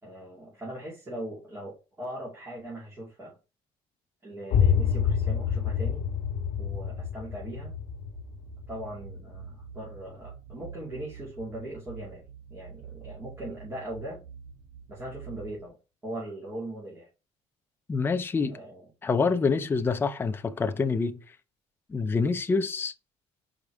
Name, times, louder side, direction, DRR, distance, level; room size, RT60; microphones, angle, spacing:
voice 1, 0.0-3.4 4.2-6.0 6.6-7.7 8.7-12.2 12.5-14.2 14.9-15.8 16.0-17.1 18.5-18.8, right 1 dB, 20° right, 2.9 m, -40 dB
sound 1, 4.5-10.1, left 7 dB, 80° left, 1.3 m, -28 dB
sound 2, 6.1-15.7, right 7 dB, 35° right, 0.8 m, -46 dB
voice 2, 17.9-18.6 19.0-21.2 21.9-22.9, left 4 dB, 15° left, 0.5 m, -26 dB
5.3 x 5.0 x 4.7 m
cardioid pair, 165°, 14 cm